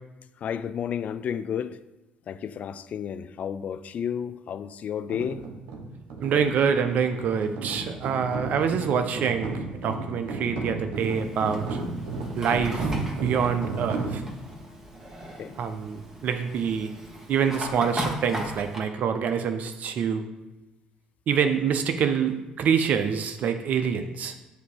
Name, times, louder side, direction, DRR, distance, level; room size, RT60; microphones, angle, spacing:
voice 1, 0.4-1.8 2.3-5.5 15.4-15.6, left 8 dB, 50° left, 0.3 m, -32 dB
sound 1, 5.1-14.5, right 3 dB, 75° right, 0.9 m, -34 dB
voice 2, 6.2-11.8 12.3-12.9 13.1-14.2 15.6-16.9 17.3-20.3 21.3-24.3, right 7 dB, 60° right, 0.5 m, -26 dB
Fire, 10.9-18.8, right 1 dB, 20° right, 1.5 m, -37 dB
8.0 x 2.7 x 4.8 m
hypercardioid pair, 60°, 3 cm